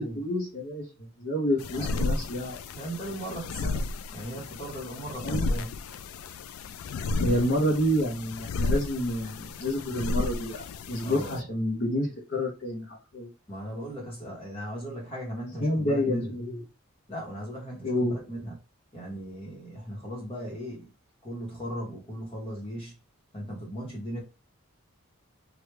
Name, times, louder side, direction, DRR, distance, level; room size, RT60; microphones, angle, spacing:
voice 1, 0.0-2.5 5.2-5.5 7.2-13.3 15.6-16.6 17.8-18.2, equal, 50° left, 0.7 m, -29 dB
sound 1, 1.6-11.4, left 3 dB, 75° left, 0.3 m, -33 dB
voice 2, 1.7-2.1 2.7-5.7 11.0-11.5 13.5-16.3 17.1-18.6 18.9-20.9 21.2-22.9 23.3-24.2, equal, 25° left, 1.0 m, -37 dB
3.3 x 2.3 x 3.2 m
head